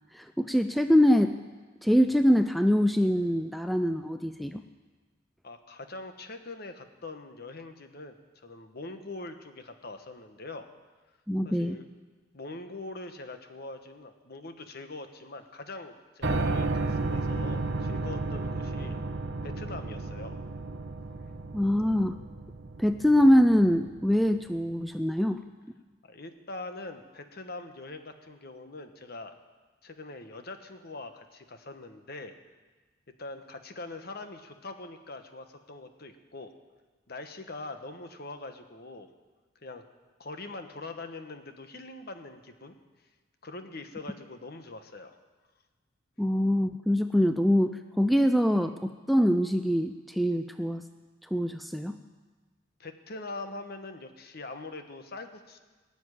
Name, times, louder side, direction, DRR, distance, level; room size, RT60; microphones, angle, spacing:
voice 1, 0.1-1.4 1.8-4.6 11.3-11.8 21.5-22.1 22.8-25.4 46.2-50.8 51.3-52.0, equal, ahead, 8 dB, 0.4 m, -24 dB
voice 2, 5.4-10.7 11.4-11.8 12.3-18.9 19.4-20.4 26.0-29.3 29.8-32.4 33.2-36.5 37.1-39.1 39.6-39.8 40.2-42.8 43.4-45.2 52.8-55.6, left 2 dB, 50° left, 7 dB, 1.2 m, -43 dB
Piano, 16.2-24.2, right 3 dB, 55° right, 1.0 m, -33 dB
19.5 x 7.2 x 9.9 m, 1.3 s
head